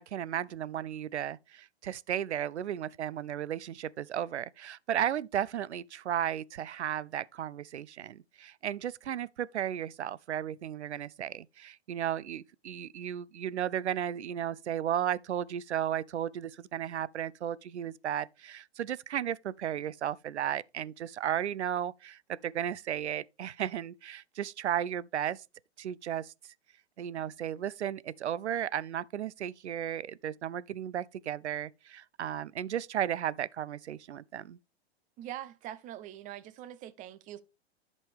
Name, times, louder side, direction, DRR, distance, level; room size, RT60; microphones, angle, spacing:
voice 1, 0.0-25.4 25.8-26.3 27.0-34.6, right 10 dB, 90° right, 0.5 m, -34 dB
voice 2, 35.2-37.4, right 12 dB, 25° right, 0.6 m, -43 dB
11.5 x 5.3 x 3.4 m
hypercardioid pair, 115°, 33 cm